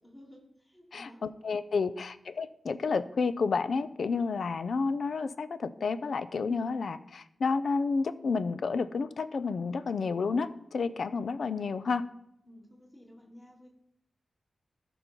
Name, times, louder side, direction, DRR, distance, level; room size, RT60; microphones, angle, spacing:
voice 1, 0.0-1.2 10.9-11.5 12.5-13.7, left 1 dB, 20° left, -2 dB, 2.9 m, -54 dB
voice 2, 0.9-12.0, left 4 dB, 70° left, 14 dB, 0.5 m, -30 dB
14.0 x 5.4 x 4.5 m, 0.80 s
wide cardioid pair, 100°, 0 cm